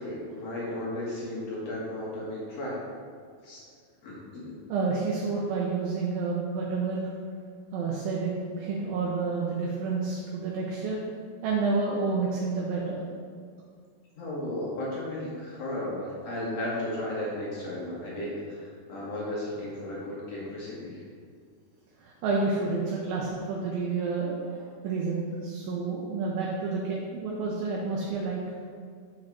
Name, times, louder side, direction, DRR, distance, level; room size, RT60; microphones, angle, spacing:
voice 1, 0.0-2.8 3.4-3.6 4.0-4.6 14.1-21.0, left 1 dB, 60° left, -6 dB, 1.7 m, -34 dB
voice 2, 4.7-7.1 7.7-11.0 11.4-13.0 22.0-28.4, right 4 dB, 75° right, -3 dB, 2.4 m, -29 dB
7.6 x 4.8 x 5.9 m, 2.1 s
omnidirectional pair, 4.9 m